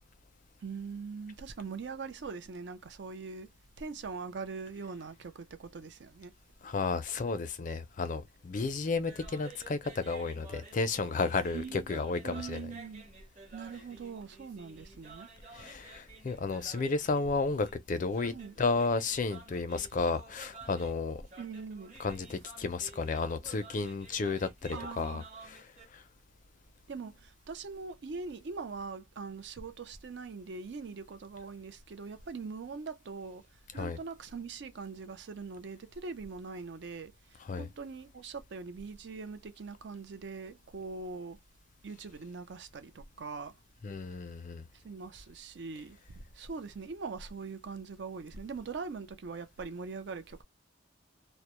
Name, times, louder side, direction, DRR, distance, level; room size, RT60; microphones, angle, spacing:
voice 1, 0.6-3.5 3.8-6.3 11.5-13.0 13.5-15.3 18.3-18.6 21.4-22.0 24.7-25.2 26.9-33.4 33.7-37.1 37.6-41.4 41.8-43.5 44.8-50.4, right 4 dB, 60° right, 0.4 m, -42 dB
voice 2, 6.6-12.7 15.5-18.3 18.6-21.2 22.0-25.6 25.9-26.0 33.8-34.0 37.4-37.7 43.8-44.6, left 4 dB, 40° left, 0.4 m, -32 dB
sound 1, 9.1-25.8, right 2 dB, 35° right, 0.9 m, -52 dB
2.1 x 2.0 x 2.9 m
head